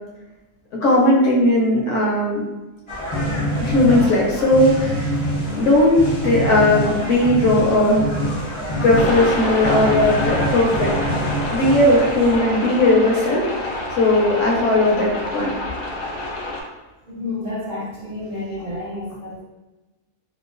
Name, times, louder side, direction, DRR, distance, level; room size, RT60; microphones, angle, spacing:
voice 1, 0.8-2.4 3.6-5.0 5.6-6.0 6.2-8.1 8.8-11.2 11.5-15.5, left 1 dB, 65° left, -5 dB, 0.8 m, -17 dB
sound 1, 2.9-12.4, equal, 40° left, 0.4 m, -25 dB
sound 2, 8.9-16.6, left 1 dB, 90° left, 1.1 m, -27 dB
voice 2, 17.1-19.4, left 2 dB, 65° right, -9 dB, 0.4 m, -30 dB
2.9 x 2.1 x 2.4 m, 1.1 s
omnidirectional pair, 1.6 m